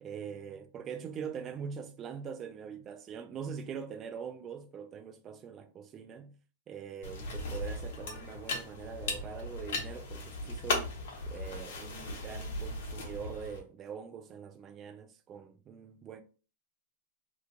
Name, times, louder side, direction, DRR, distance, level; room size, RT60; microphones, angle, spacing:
voice 1, 0.0-6.3 6.7-10.9 11.3-16.2, right 7 dB, 20° right, 0.3 m, -43 dB
sound 1, 7.0-13.6, left 2 dB, 60° left, 1.0 m, -37 dB
2.9 x 2.2 x 3.7 m
supercardioid pair, 175°, 0 cm